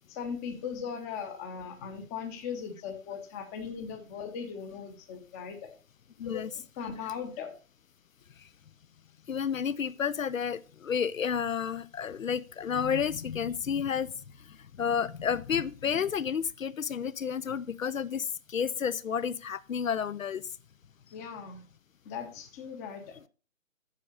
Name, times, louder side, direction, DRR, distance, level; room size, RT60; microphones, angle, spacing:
voice 1, 0.1-5.7 6.2-6.4 6.7-7.5 17.5-17.6 21.1-21.6 22.0-23.3, left 6 dB, 10° left, 0.8 m, -38 dB
voice 2, 6.2-6.5 9.3-14.1 14.5-20.4, left 7 dB, 70° left, 0.7 m, -31 dB
7.5 x 6.4 x 6.6 m
figure-of-eight pair, 140°, 41 cm